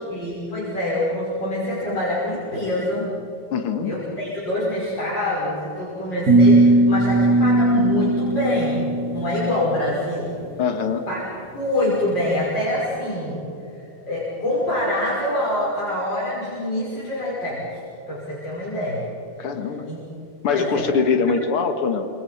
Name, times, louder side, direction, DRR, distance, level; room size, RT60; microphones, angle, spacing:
voice 1, 0.1-3.1 3.8-10.3 11.1-11.2 11.5-13.4 14.1-17.8 18.1-19.1 19.9-20.0 20.5-20.9, left 1 dB, 55° left, -7 dB, 6.7 m, -25 dB
voice 2, 3.5-4.0 10.6-11.1 19.4-19.9 20.4-22.1, left 5 dB, 80° left, 7 dB, 2.5 m, -23 dB
sound 1, 6.3-9.4, right 2 dB, 45° right, 3.0 m, -17 dB
29.0 x 27.5 x 5.8 m, 2.8 s
omnidirectional pair, 2.4 m